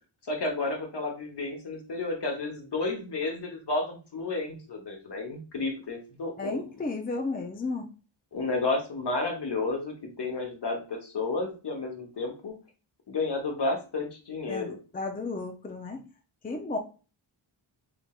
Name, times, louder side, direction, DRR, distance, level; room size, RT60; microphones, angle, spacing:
voice 1, 0.3-6.6 8.3-12.5 13.1-14.8, left 3 dB, 60° left, 2 dB, 1.2 m, -31 dB
voice 2, 6.4-7.9 14.5-16.0 16.4-16.8, left 3 dB, 20° left, 4 dB, 0.5 m, -33 dB
3.8 x 3.4 x 2.3 m, 0.34 s
cardioid pair, 60°, 47 cm